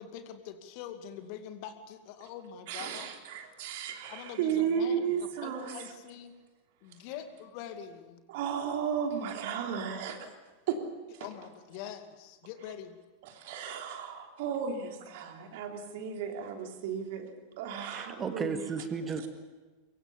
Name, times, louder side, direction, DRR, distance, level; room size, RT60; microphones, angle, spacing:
voice 1, 0.0-3.1 4.1-5.0 5.4-6.3 6.8-8.2 11.2-13.0 15.4-15.6, left 9 dB, 45° left, 8 dB, 2.3 m, -44 dB
voice 2, 2.7-5.9 8.3-10.3 10.7-10.8 11.1-11.3 13.2-18.6 19.2-19.3, right 7 dB, 50° right, 4 dB, 3.2 m, -34 dB
voice 3, 17.8-19.3, right 5 dB, 20° right, 8 dB, 2.0 m, -35 dB
24.0 x 23.5 x 7.1 m, 1.3 s
figure-of-eight pair, 90°, 0 cm